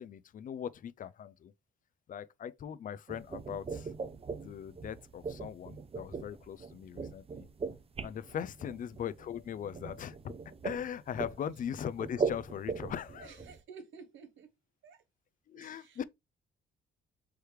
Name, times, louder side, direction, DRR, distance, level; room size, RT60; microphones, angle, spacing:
voice 1, 0.0-1.5 2.1-3.9 4.4-7.5 8.0-10.3 10.6-13.3 15.5-16.0, left 9 dB, 45° left, 0.4 m, -40 dB
sound 1, 3.1-13.6, right 5 dB, 30° right, 0.6 m, -40 dB
voice 2, 13.2-14.5 14.8-15.0 15.5-16.0, right 5 dB, 75° right, 1.1 m, -52 dB
4.7 x 3.2 x 3.2 m
cardioid pair, 90°, 20 cm